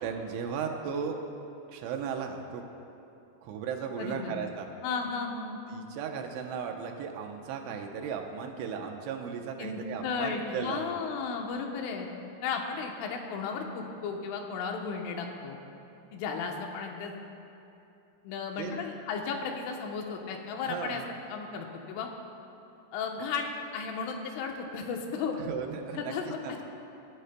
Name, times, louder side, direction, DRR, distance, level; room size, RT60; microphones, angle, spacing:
voice 1, 0.0-1.2 1.7-2.6 3.4-4.7 5.7-10.9 18.6-18.8 20.6-21.1 25.3-26.6, right 6 dB, 80° right, 3 dB, 3.2 m, -36 dB
voice 2, 4.0-4.3 4.8-5.6 9.6-12.1 12.4-15.6 16.1-17.1 18.2-21.0 21.3-22.1 22.9-25.4 25.9-26.6, left 5 dB, 85° left, 2 dB, 3.5 m, -34 dB
25.0 x 12.0 x 2.2 m, 2.8 s
omnidirectional pair, 5.5 m